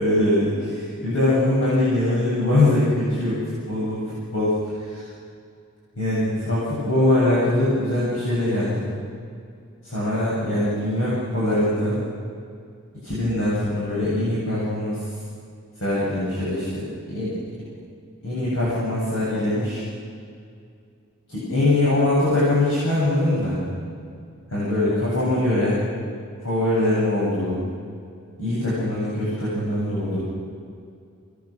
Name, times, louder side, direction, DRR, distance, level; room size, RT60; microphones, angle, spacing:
voice 1, 0.0-3.4 3.7-4.0 4.3-5.0 6.0-8.9 9.8-12.0 13.0-15.0 15.8-17.4 18.2-19.8 21.3-23.6 24.5-25.8 26.4-27.6 28.4-30.2, left 1 dB, 65° left, -9 dB, 8.0 m, -22 dB
27.0 x 20.5 x 6.7 m, 2.4 s
head